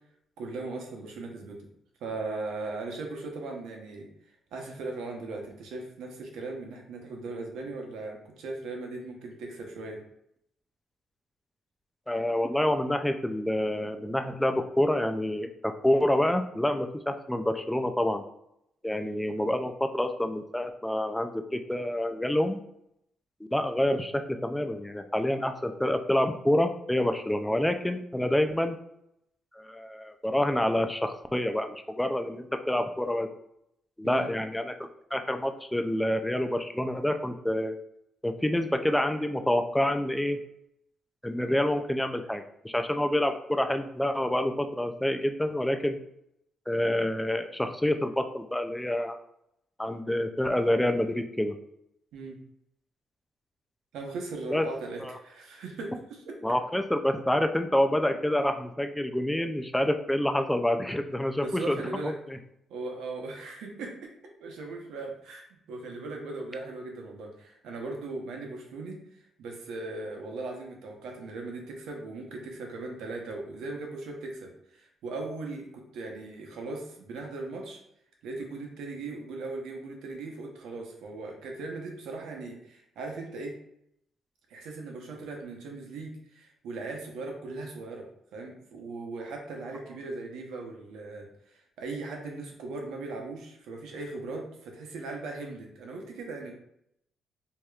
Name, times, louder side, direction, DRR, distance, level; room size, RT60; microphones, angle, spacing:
voice 1, 0.4-1.7 2.0-4.1 4.5-10.0 34.0-34.3 52.1-52.4 53.9-56.4 61.4-62.2 62.7-64.1 64.4-77.8 78.2-83.6 84.5-96.5, right 3 dB, 85° right, 1 dB, 0.8 m, -38 dB
voice 2, 12.1-18.2 18.8-22.6 23.5-28.8 29.5-33.3 34.0-34.7 35.1-37.8 38.2-40.4 41.2-46.0 46.7-49.2 49.8-51.6 54.5-54.6 55.0-55.2 56.4-61.8 62.0-62.4, left 1 dB, 5° left, 6 dB, 0.3 m, -27 dB
4.7 x 2.8 x 2.3 m, 0.76 s
cardioid pair, 90°, 0 cm